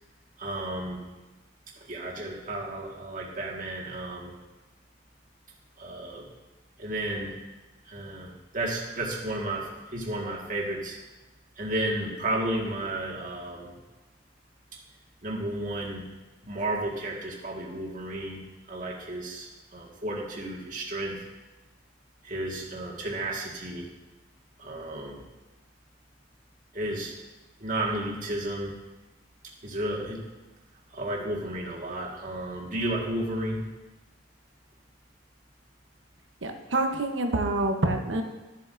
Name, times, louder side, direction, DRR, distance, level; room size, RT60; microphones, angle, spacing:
voice 1, 0.4-1.0 1.8-4.3 5.8-6.3 6.8-7.4 7.9-11.0 11.6-13.8 15.2-16.1 16.4-21.2 22.2-23.9 24.6-25.2 26.7-27.1 27.6-28.7 29.6-30.2 30.9-33.6, right 1 dB, 45° right, -3 dB, 1.8 m, -33 dB
voice 2, 36.4-38.2, right 2 dB, 85° right, 4 dB, 1.0 m, -27 dB
13.5 x 7.6 x 2.6 m, 1.2 s
head